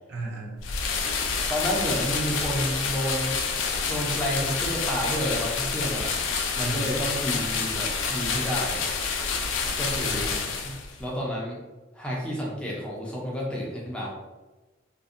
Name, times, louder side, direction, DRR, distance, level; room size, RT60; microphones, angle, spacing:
voice 1, 0.1-0.6 6.6-6.9 10.1-10.6, right 2 dB, 60° right, 0 dB, 0.5 m, -36 dB
sound 1, 0.6-11.0, left 5 dB, 75° left, 0.3 m, -28 dB
voice 2, 1.5-3.4 3.9-6.2 6.5-8.9 9.8-10.3 10.6-11.6 11.9-14.1, equal, 5° left, -3 dB, 0.4 m, -30 dB
2.5 x 2.0 x 2.4 m, 1.2 s
head